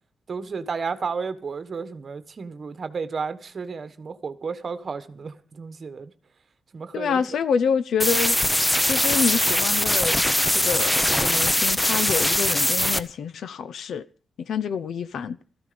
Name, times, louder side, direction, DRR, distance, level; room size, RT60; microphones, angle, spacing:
voice 1, 0.3-6.1 6.7-7.2, right 5 dB, 40° right, 1.3 m, -32 dB
voice 2, 6.9-8.4 8.8-14.0 14.4-15.4, left 7 dB, 80° left, 0.7 m, -27 dB
sound 1, 8.0-13.0, left 1 dB, 10° left, 0.8 m, -21 dB
16.5 x 14.0 x 5.2 m
wide cardioid pair, 155°, 0 cm